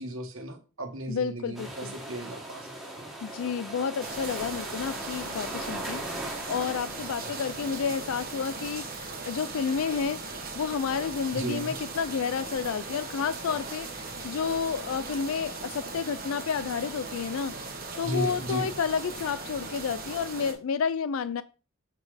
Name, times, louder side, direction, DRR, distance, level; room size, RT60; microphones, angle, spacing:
voice 1, 0.0-3.1 7.0-7.1 11.3-11.7 18.0-18.8, right 1 dB, 65° right, 1.5 m, -35 dB
voice 2, 1.1-1.9 3.2-6.0 6.5-10.2 10.6-17.5 18.0-21.4, left 6 dB, 65° left, 0.4 m, -30 dB
sound 1, 1.5-8.8, right 1 dB, ahead, 1.7 m, -40 dB
sound 2, 4.0-20.5, right 3 dB, 40° right, 1.5 m, -39 dB
7.2 x 4.1 x 4.9 m
head